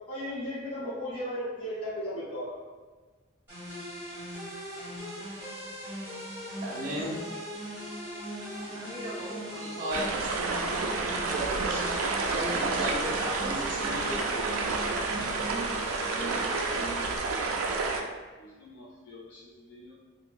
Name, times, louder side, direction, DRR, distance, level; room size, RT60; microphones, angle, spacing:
voice 1, 0.1-2.5, equal, 25° left, -11 dB, 0.8 m, -35 dB
sound 1, 3.5-17.2, equal, 10° right, 1.3 m, -39 dB
voice 2, 6.6-7.4 8.5-11.3 11.6-14.6, equal, 40° right, -8 dB, 0.7 m, -37 dB
sound 2, 9.9-18.0, right 3 dB, 85° right, 0.3 m, -30 dB
voice 3, 16.1-17.6 18.4-19.9, left 1 dB, 60° left, -6 dB, 0.4 m, -50 dB
3.0 x 2.1 x 2.5 m, 1.3 s
head